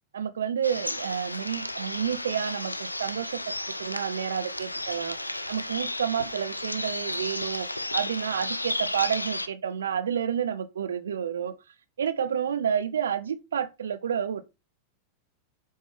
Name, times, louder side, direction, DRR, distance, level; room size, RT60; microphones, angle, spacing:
voice 1, 0.1-3.4 3.7-11.5 12.0-14.4, right 8 dB, 65° right, 0.6 m, -30 dB
sound 1, 0.6-9.5, left 1 dB, 85° left, 0.4 m, -33 dB
8.7 x 3.6 x 3.2 m
figure-of-eight pair, 90°, 0 cm